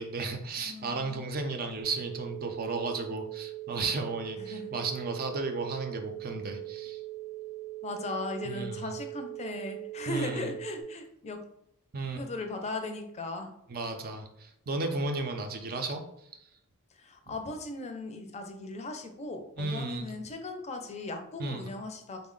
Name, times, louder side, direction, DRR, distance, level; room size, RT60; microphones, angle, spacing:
voice 1, 0.0-7.0 8.4-8.9 10.1-10.5 11.9-12.2 13.7-16.0 17.3-17.4 19.6-20.1 21.4-21.6, right 3 dB, 40° right, 5 dB, 0.5 m, -34 dB
voice 2, 0.6-1.2 4.4-4.7 7.8-11.4 12.1-13.5 17.0-22.2, left 2 dB, 30° left, 5 dB, 0.5 m, -38 dB
sound 1, 1.8-10.8, right 17 dB, 5° right, 0.7 m, -41 dB
3.5 x 2.1 x 3.7 m, 0.77 s
head